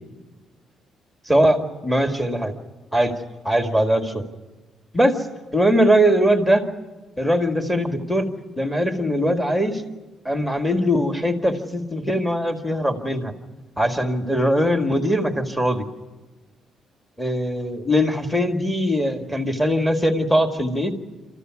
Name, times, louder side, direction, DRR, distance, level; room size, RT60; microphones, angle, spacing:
voice 1, 1.3-2.5 2.9-3.1 3.4-4.3 4.9-5.3 5.5-6.7 7.2-9.8 10.2-13.3 13.8-15.9 17.2-21.0, equal, 5° left, 5 dB, 2.0 m, -21 dB
27.0 x 14.5 x 9.6 m, 1.2 s
cardioid pair, 155°, 0 cm